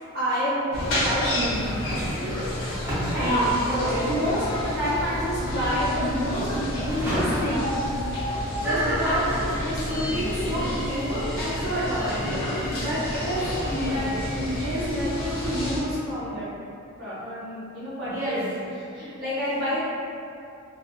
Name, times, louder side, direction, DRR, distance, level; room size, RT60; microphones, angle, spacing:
voice 1, 0.1-1.7 2.1-2.5 2.8-3.3 4.1-7.6 8.5-9.2 9.6-16.5 17.0-18.6 18.9-19.8, equal, 45° right, -12 dB, 0.6 m, -29 dB
sound 1, 0.7-15.8, left 1 dB, 60° left, 0.8 m, -29 dB
voice 2, 1.3-2.2 2.9-4.1 6.8-7.3 8.6-9.4 10.6-10.8 14.0-14.2 18.0-18.5, right 1 dB, 10° right, -13 dB, 1.0 m, -28 dB
Singing, 9.9-15.8, left 1 dB, 40° left, 0.4 m, -39 dB
2.8 x 2.3 x 2.6 m, 2.6 s
head